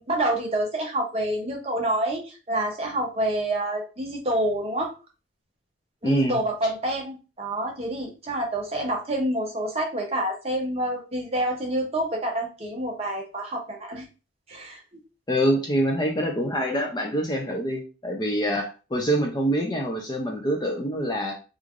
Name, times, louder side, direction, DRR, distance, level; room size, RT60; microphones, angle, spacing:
voice 1, 0.0-4.9 6.0-14.1 14.5-14.8, right 1 dB, 30° right, 0 dB, 0.7 m, -27 dB
voice 2, 6.0-6.4 15.3-21.4, equal, 20° left, 1 dB, 0.4 m, -25 dB
3.1 x 2.4 x 2.4 m, 0.32 s
head